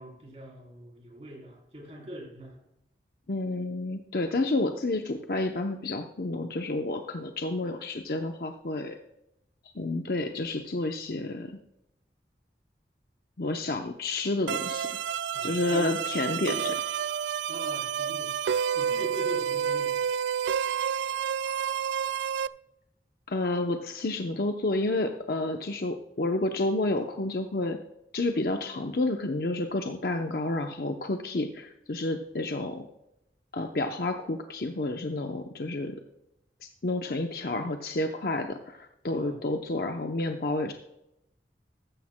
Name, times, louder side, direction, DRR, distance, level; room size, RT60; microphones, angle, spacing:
voice 1, 0.0-2.6 15.3-15.9 16.5-16.7 17.5-18.3 18.7-20.0 39.1-39.4, right 1 dB, 35° right, -1 dB, 3.8 m, -41 dB
voice 2, 3.3-9.0 9.7-11.6 13.4-15.0 15.4-16.7 23.3-27.8 28.1-32.9 33.5-36.0 36.6-40.7, left 2 dB, 55° left, 4 dB, 0.7 m, -30 dB
sound 1, 14.5-22.5, right 8 dB, 85° right, 0.3 m, -29 dB
14.5 x 13.5 x 2.2 m, 0.85 s
head